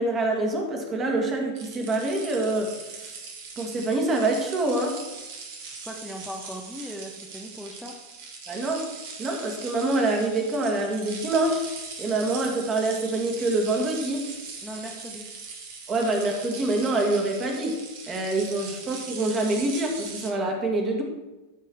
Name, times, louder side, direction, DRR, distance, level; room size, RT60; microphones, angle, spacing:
voice 1, 0.0-3.2 3.6-5.0 8.5-8.9 9.2-11.7 12.0-14.3 15.9-21.0, right 2 dB, 25° right, 2 dB, 1.9 m, -26 dB
sound 1, 1.5-20.3, right 4 dB, 50° right, 1.7 m, -40 dB
voice 2, 5.8-8.0 14.6-15.3 18.7-18.9, equal, ahead, 0 dB, 0.9 m, -38 dB
14.0 x 4.8 x 4.6 m, 1.1 s
figure-of-eight pair, 90°, 0 cm